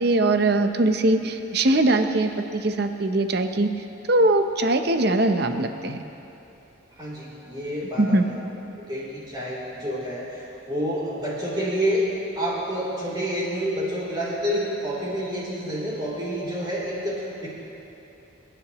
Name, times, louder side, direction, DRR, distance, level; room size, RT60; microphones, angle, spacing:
voice 1, 0.0-3.7 4.1-6.0 8.0-8.3, right 2 dB, 50° right, 7 dB, 0.7 m, -21 dB
voice 2, 7.0-8.4 8.8-10.4 10.7-12.0 12.3-17.5, equal, 20° right, -8 dB, 3.1 m, -28 dB
29.5 x 9.9 x 3.0 m, 3.0 s
head